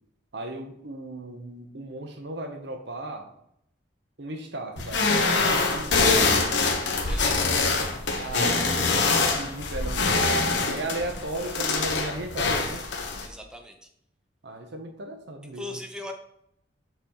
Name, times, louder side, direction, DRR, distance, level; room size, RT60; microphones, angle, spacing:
voice 1, 0.3-3.3 4.2-6.6 8.2-10.4 10.7-12.9 14.4-15.7, right 2 dB, 65° right, 5 dB, 0.9 m, -36 dB
sound 1, 4.8-13.3, left 3 dB, 70° left, 1.1 m, -24 dB
voice 2, 7.1-7.8 13.2-13.8 15.4-16.1, left 1 dB, 5° right, 4 dB, 0.7 m, -39 dB
6.8 x 5.9 x 3.0 m, 0.74 s
head